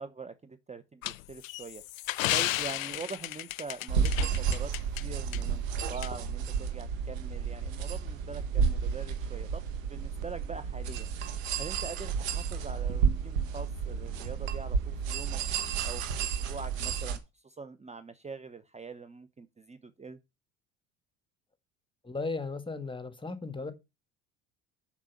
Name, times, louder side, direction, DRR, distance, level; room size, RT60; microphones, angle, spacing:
voice 1, 0.0-4.7 5.0-5.6 5.9-11.1 11.6-15.4 15.8-20.2, right 4 dB, 15° right, 1.0 m, -44 dB
sound 1, 1.0-5.0 5.3-5.4 6.0-6.1, left 17 dB, 85° left, 0.5 m, -33 dB
sound 2, 3.9-17.2, right 6 dB, 80° right, 1.5 m, -31 dB
voice 2, 22.0-23.7, left 3 dB, 15° left, 1.7 m, -36 dB
7.3 x 6.2 x 7.1 m
hypercardioid pair, 65°, 39 cm